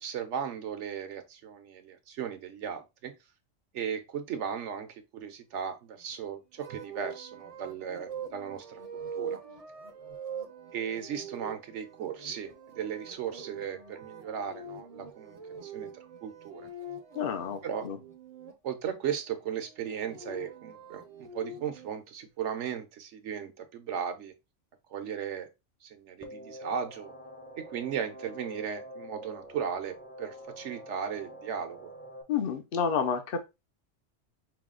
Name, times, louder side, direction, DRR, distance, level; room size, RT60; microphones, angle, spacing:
voice 1, 0.0-3.1 3.7-8.8 9.1-9.4 10.7-15.9 16.2-16.7 17.6-17.9 18.6-24.3 24.9-25.5 25.8-27.1 27.6-31.9, right 8 dB, 70° right, 1.0 m, -36 dB
sound 1, 6.6-18.5 19.7-21.9, right 4 dB, 35° right, 0.7 m, -43 dB
voice 2, 17.1-18.0 32.3-33.4, left 6 dB, 55° left, 0.7 m, -30 dB
sound 2, 26.2-32.2, equal, 15° left, 0.6 m, -46 dB
4.8 x 2.3 x 3.6 m
omnidirectional pair, 1.3 m